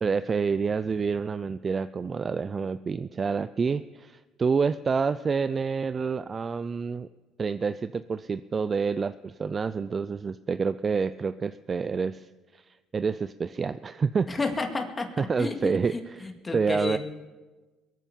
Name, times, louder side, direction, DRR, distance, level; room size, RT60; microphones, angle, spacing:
voice 1, 0.0-7.1 7.4-12.6 12.9-14.3 15.2-15.9 16.5-17.0, right 5 dB, 35° right, 14 dB, 0.4 m, -28 dB
voice 2, 14.3-15.1 15.4-17.0, left 3 dB, 25° left, 4 dB, 2.3 m, -31 dB
21.5 x 9.2 x 7.1 m, 1.3 s
supercardioid pair, 80°, 0 cm